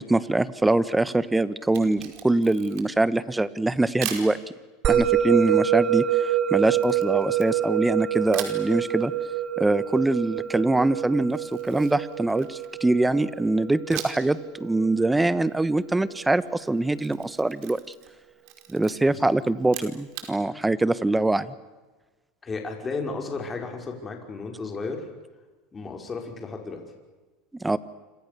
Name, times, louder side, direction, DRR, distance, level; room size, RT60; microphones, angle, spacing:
voice 1, 0.0-4.4 4.9-9.1 9.6-17.8 18.7-21.5 27.6-27.8, right 2 dB, 10° right, 15 dB, 1.2 m, -23 dB
Camera, 1.6-3.1 4.0-4.3 6.7-7.9 8.3-8.6 11.3-12.8 13.9-14.3 14.7-14.8 16.8-18.2 18.4-18.9 19.6-20.3, right 11 dB, 65° right, 4.9 m, -38 dB
Musical instrument, 4.8-15.4, right 10 dB, 40° right, 2.5 m, -26 dB
voice 2, 22.4-25.1 25.7-26.8, left 4 dB, 20° left, 2 dB, 5.5 m, -34 dB
29.0 x 26.5 x 6.9 m, 1.2 s
supercardioid pair, 120°, 0 cm